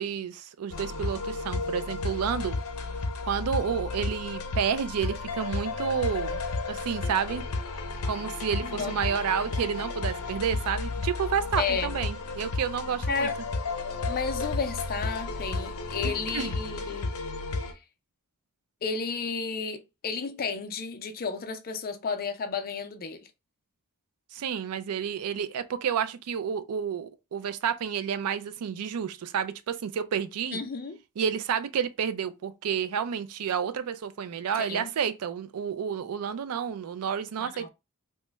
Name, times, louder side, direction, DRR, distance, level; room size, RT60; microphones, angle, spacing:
voice 1, 0.0-2.5 3.3-7.4 8.1-13.3 16.0-16.5 24.3-30.6 31.2-37.7, right 7 dB, 75° right, 0.4 m, -30 dB
sound 1, 0.7-17.7, left 3 dB, 90° left, 0.6 m, -33 dB
voice 2, 8.6-8.9 11.6-11.9 13.1-13.4 14.1-17.1 18.8-23.3 30.5-31.0 34.6-34.9 37.4-37.7, left 5 dB, 45° left, 0.5 m, -32 dB
3.0 x 2.1 x 3.3 m
head